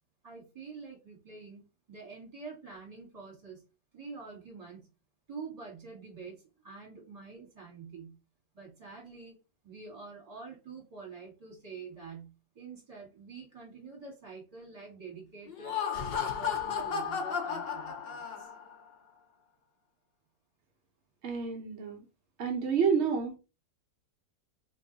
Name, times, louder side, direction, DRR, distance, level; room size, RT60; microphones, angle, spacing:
voice 1, 0.2-3.6 3.9-4.9 5.3-8.1 8.5-9.4 9.6-18.5, right 4 dB, 20° right, -2 dB, 1.4 m, -47 dB
Laughter, 15.5-18.7, left 7 dB, 85° left, 0.5 m, -34 dB
voice 2, 21.2-22.0 22.4-23.3, right 6 dB, 75° right, 1 dB, 0.6 m, -29 dB
2.9 x 2.6 x 3.9 m, 0.30 s
omnidirectional pair, 2.0 m